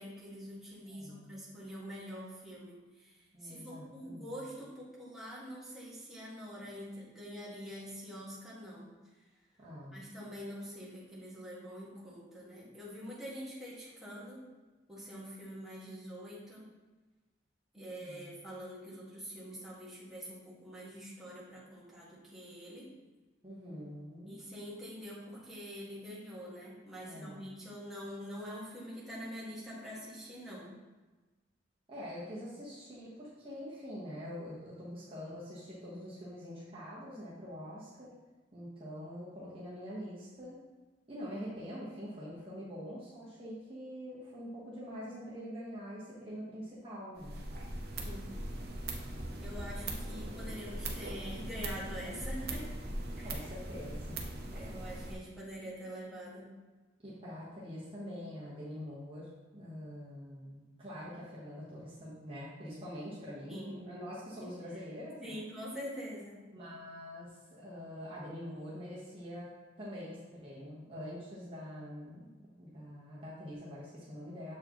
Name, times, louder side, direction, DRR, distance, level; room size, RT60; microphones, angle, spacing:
voice 1, 0.0-8.9 9.9-14.4 14.9-16.7 17.7-22.9 24.3-30.7 48.0-48.3 49.4-52.7 53.2-53.5 54.5-56.5 63.5-63.8 64.7-64.8 65.2-66.4, equal, ahead, -8 dB, 1.6 m, -45 dB
voice 2, 0.9-1.4 3.3-4.4 9.6-10.1 17.7-18.3 23.4-24.4 27.0-27.6 31.9-38.1 38.5-40.6 41.1-47.4 53.2-54.1 57.0-65.4 66.5-69.5 69.8-74.6, equal, 30° right, -8 dB, 1.1 m, -45 dB
sound 1, 47.2-55.1, right 1 dB, 55° right, 0.8 m, -40 dB
7.0 x 4.8 x 3.0 m, 1.2 s
head